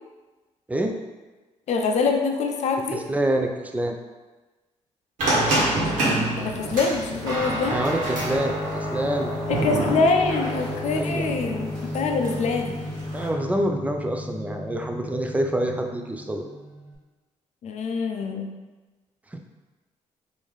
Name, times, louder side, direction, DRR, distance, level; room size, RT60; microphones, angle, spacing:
voice 1, 1.7-3.0 6.4-7.8 9.5-12.9 17.6-18.5, left 4 dB, 60° left, 3 dB, 0.5 m, -25 dB
voice 2, 2.9-4.0 7.7-9.3 10.9-11.3 13.1-16.5 19.3-19.4, right 1 dB, 10° right, 3 dB, 0.4 m, -26 dB
sound 1, 5.2-13.3, right 1 dB, 80° right, 1.2 m, -28 dB
Guitar, 7.3-16.9, left 1 dB, 30° right, 1.1 m, -32 dB
3.5 x 2.6 x 3.2 m, 1.2 s
cardioid pair, 75°, 13 cm